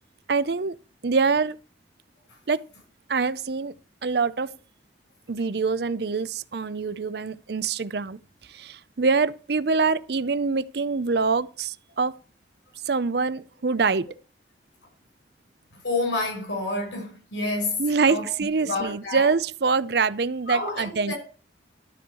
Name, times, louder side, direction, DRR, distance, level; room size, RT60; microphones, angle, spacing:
voice 1, 0.3-0.8 1.0-1.6 2.5-2.6 3.1-3.7 4.0-4.6 5.3-8.2 8.5-12.2 12.9-14.1 17.8-21.1, right 4 dB, 60° right, 0.6 m, -25 dB
voice 2, 15.8-18.3 18.6-19.3 20.5-21.2, left 2 dB, 90° left, 5.6 m, -29 dB
12.5 x 4.7 x 6.9 m
head